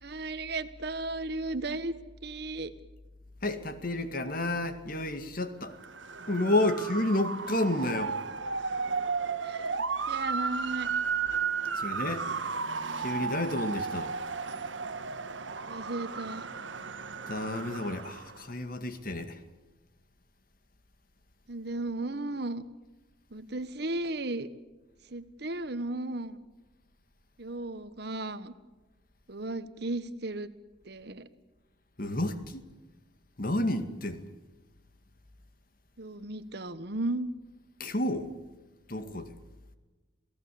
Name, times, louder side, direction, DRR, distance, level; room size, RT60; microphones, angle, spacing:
voice 1, 0.0-1.9 2.2-2.7 9.4-9.7 10.1-10.9 15.7-16.5 21.5-22.6 23.3-24.5 25.1-26.4 27.4-28.5 29.3-30.5 30.8-31.3 36.0-37.3, right 2 dB, 60° right, 1.3 m, -35 dB
voice 2, 3.4-5.7 6.3-8.1 11.7-12.3 13.0-14.2 17.3-19.4 32.0-32.6 33.4-34.3 37.8-38.3 38.9-39.3, left 1 dB, 50° left, 2.2 m, -30 dB
Motor vehicle (road) / Siren, 5.7-18.4, right 5 dB, 85° right, 1.5 m, -34 dB
28.0 x 18.0 x 8.6 m
head